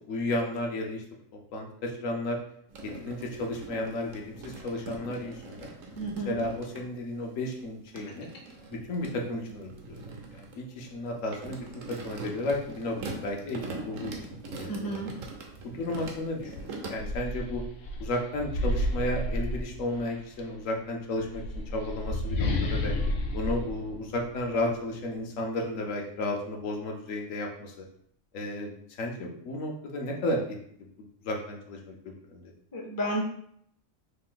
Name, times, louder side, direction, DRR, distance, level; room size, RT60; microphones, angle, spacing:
voice 1, 0.1-1.0 1.5-2.4 2.8-5.7 6.3-8.3 8.7-10.0 10.3-14.2 14.5-15.0 15.6-17.6 18.0-21.4 21.7-22.9 23.3-27.7 28.3-28.7 29.0-30.6 31.0-32.4, left 1 dB, 80° left, 1 dB, 1.1 m, -33 dB
sound 1, 2.7-6.8 7.5-16.9, right 3 dB, 85° right, 1.1 m, -42 dB
voice 2, 6.0-6.4 14.7-15.1 32.7-33.2, right 1 dB, 30° left, 0 dB, 0.4 m, -31 dB
sound 2, 16.5-20.2 21.1-24.7, left 1 dB, 65° left, 0.7 m, -31 dB
3.2 x 2.5 x 3.7 m, 0.67 s
omnidirectional pair, 1.3 m